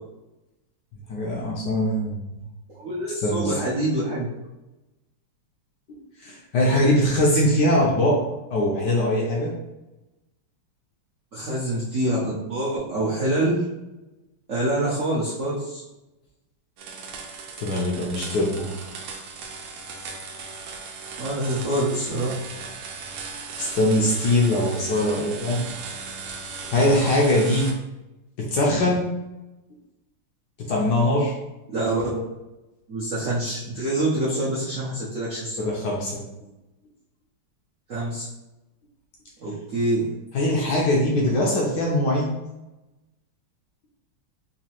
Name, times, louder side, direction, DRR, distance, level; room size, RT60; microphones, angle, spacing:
voice 1, 1.1-2.2 3.2-3.5 6.2-8.2 8.5-9.5 17.6-18.9 23.6-25.6 26.7-27.7 28.4-29.1 30.7-31.3 35.6-36.2 40.3-42.3, left 1 dB, 70° left, -3 dB, 1.1 m, -22 dB
voice 2, 2.7-4.3 11.3-13.6 14.5-15.8 21.2-22.4 31.7-32.1 32.9-35.7 37.9-38.2 39.4-40.1, right 1 dB, 65° right, -9 dB, 0.8 m, -26 dB
sound 1, 16.8-27.7, right 5 dB, 80° right, 1.4 m, -37 dB
4.0 x 2.7 x 2.9 m, 0.98 s
omnidirectional pair, 2.3 m